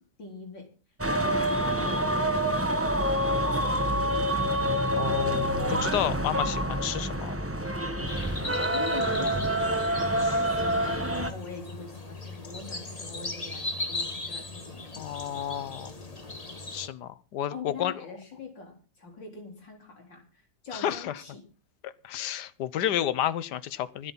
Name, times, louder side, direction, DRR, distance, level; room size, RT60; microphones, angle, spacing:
voice 1, 0.2-0.7 1.1-3.8 8.7-15.5 17.5-21.4, left 3 dB, 90° left, 2 dB, 4.9 m, -43 dB
sound 1, 1.0-11.3, right 1 dB, 10° right, 1.0 m, -27 dB
voice 2, 5.0-7.3 15.0-15.9 16.7-17.9 20.7-21.2 21.8-24.1, left 11 dB, 70° left, 16 dB, 1.5 m, -31 dB
sound 2, 8.1-16.9, left 2 dB, 20° left, 1.8 m, -38 dB
24.5 x 8.4 x 4.1 m, 0.34 s
omnidirectional pair, 1.9 m